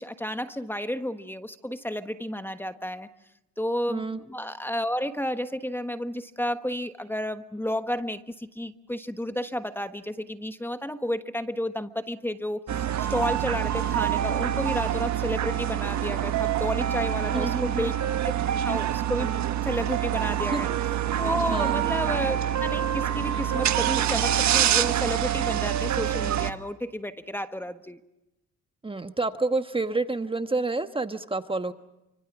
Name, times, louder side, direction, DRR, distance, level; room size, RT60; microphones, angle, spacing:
voice 1, 0.0-3.1 3.6-17.9 18.2-18.3 18.6-20.7 21.2-28.0, equal, 5° left, 9 dB, 1.3 m, -31 dB
voice 2, 3.9-4.2 17.3-17.9 20.5-20.6 21.5-21.9 28.8-31.7, right 3 dB, 15° right, 9 dB, 1.3 m, -29 dB
sound 1, 12.7-26.5, right 10 dB, 65° right, 1.4 m, -26 dB
29.0 x 25.5 x 6.1 m, 0.92 s
cardioid pair, 90°, 30 cm